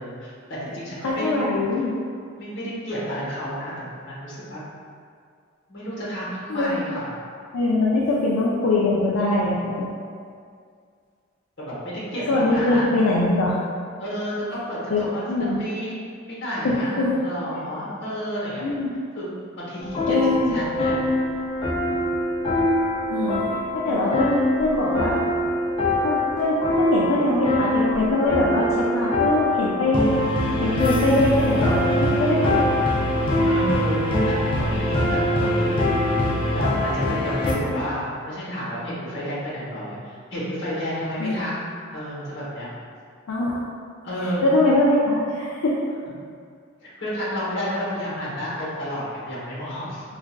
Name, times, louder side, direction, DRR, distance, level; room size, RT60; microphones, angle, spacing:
voice 1, 0.0-1.3 2.4-4.6 5.7-7.1 11.6-12.9 14.0-15.3 15.6-16.0 16.3-18.7 19.2-19.3 19.5-21.0 33.4-35.8 36.5-41.5 41.9-42.7 44.0-44.5 46.8-50.0, equal, 60° left, -8 dB, 1.1 m, -31 dB
voice 2, 1.0-1.9 6.5-6.8 7.5-9.9 12.3-13.6 14.9-15.6 16.6-17.1 18.6-18.9 20.1-20.6 23.1-23.6 23.8-25.2 26.0-30.1 30.6-32.6 41.2-41.5 43.3-43.6 44.2-45.8, left 2 dB, 80° left, -6 dB, 0.4 m, -22 dB
sound 1, 19.8-37.5, left 1 dB, 25° left, 0.4 m, -23 dB
4.4 x 2.4 x 2.2 m, 2.2 s
head